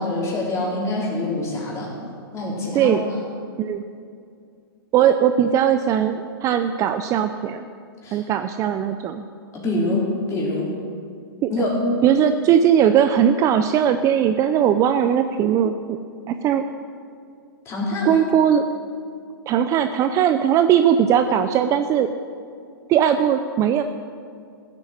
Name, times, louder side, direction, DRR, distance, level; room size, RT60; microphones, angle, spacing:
voice 1, 0.0-1.9 2.3-3.0 8.0-8.2 9.5-10.7 11.5-11.8 17.7-18.2, left 2 dB, 20° left, -3 dB, 4.1 m, -25 dB
voice 2, 4.9-7.6 8.1-9.2 11.4-11.5 12.0-16.0 16.3-16.6 18.0-18.6 19.5-22.1 22.9-23.8, right 9 dB, 25° right, 9 dB, 0.5 m, -19 dB
15.0 x 8.4 x 7.5 m, 2.4 s
hypercardioid pair, 135°, 13 cm